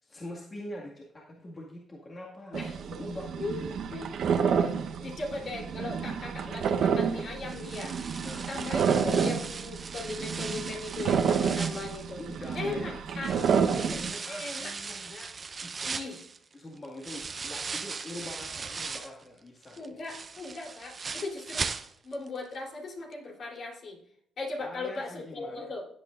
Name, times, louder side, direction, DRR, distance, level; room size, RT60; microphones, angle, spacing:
voice 1, 0.0-3.4 8.2-8.5 12.2-13.4 13.7-15.1 15.6-15.8 16.5-20.0 24.6-25.7, left 1 dB, 30° left, -3 dB, 2.0 m, -43 dB
sound 1, 2.5-14.1, right 6 dB, 70° right, 1.0 m, -29 dB
voice 2, 3.9-8.0 8.5-12.2 12.5-13.5 13.9-14.0 14.3-15.3 15.8-16.2 19.8-21.7 22.0-24.0 24.4-25.9, left 3 dB, 55° left, -1 dB, 3.5 m, -38 dB
sound 2, 7.5-12.7 13.2-19.2 19.6-22.3 22.5-22.6 23.1-23.2, right 5 dB, 35° right, 0.8 m, -38 dB
16.0 x 8.3 x 2.6 m, 0.72 s
cardioid pair, 90°, 0 cm